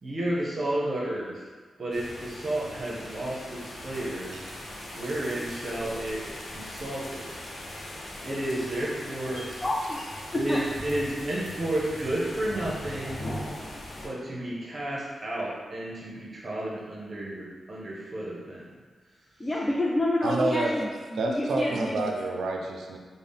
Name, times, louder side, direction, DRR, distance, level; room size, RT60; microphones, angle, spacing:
voice 1, 0.0-1.4 1.8-4.3 4.9-6.2 6.5-7.3 8.2-9.4 10.3-13.2 14.0-18.7, right 1 dB, 50° right, -5 dB, 0.8 m, -32 dB
sound 1, 1.9-14.1, left 1 dB, 70° left, 0.8 m, -40 dB
voice 2, 9.3-10.1 10.3-10.6 19.4-22.1, left 1 dB, 25° left, -3 dB, 0.4 m, -28 dB
voice 3, 20.2-20.7 21.2-23.0, right 2 dB, 85° right, 1 dB, 0.3 m, -28 dB
3.8 x 2.1 x 3.5 m, 1.5 s
cardioid pair, 75°, 0 cm